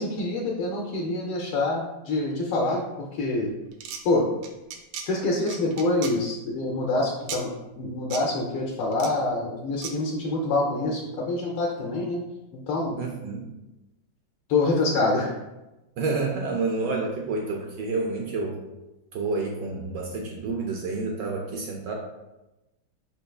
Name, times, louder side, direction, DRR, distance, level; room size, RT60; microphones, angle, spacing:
voice 1, 0.0-3.5 4.0-4.3 5.0-12.2 12.7-13.0 14.5-15.4, left 2 dB, 80° left, -1 dB, 1.5 m, -26 dB
sound 1, 3.7-4.0 4.4-5.1 5.5-6.1 7.3-7.4 8.1-8.2 8.9-9.1 9.8-9.9, right 7 dB, 90° right, 1.5 m, -35 dB
voice 2, 13.0-13.5 16.0-18.6 19.1-21.9, right 3 dB, 75° right, 0 dB, 1.1 m, -29 dB
5.3 x 4.4 x 2.3 m, 1.0 s
omnidirectional pair, 2.4 m